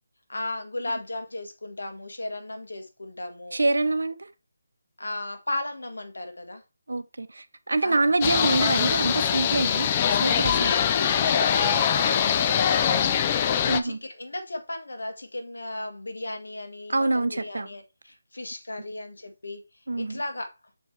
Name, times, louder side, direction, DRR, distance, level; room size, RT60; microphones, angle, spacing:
voice 1, 0.3-3.6 5.0-6.6 7.8-8.1 10.5-13.5 13.8-19.6 20.0-20.5, left 2 dB, 90° left, 1.7 m, -35 dB
voice 2, 3.5-4.2 6.9-10.7 13.7-14.0 16.9-17.7 19.9-20.2, right 2 dB, 85° right, 0.7 m, -26 dB
sound 1, 8.2-13.8, left 8 dB, 25° left, 0.5 m, -23 dB
7.0 x 4.7 x 3.4 m
figure-of-eight pair, 165°, 0 cm